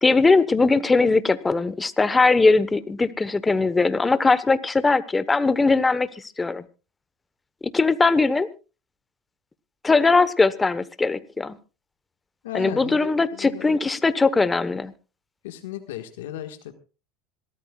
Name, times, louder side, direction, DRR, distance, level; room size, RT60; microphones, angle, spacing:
voice 1, 0.0-6.6 7.7-8.5 9.8-11.6 12.5-14.9, left 3 dB, 15° left, 14 dB, 1.1 m, -20 dB
voice 2, 12.4-13.8 15.4-16.7, left 12 dB, 90° left, 7 dB, 1.6 m, -35 dB
26.5 x 13.5 x 2.4 m, 0.32 s
supercardioid pair, 110°, 0 cm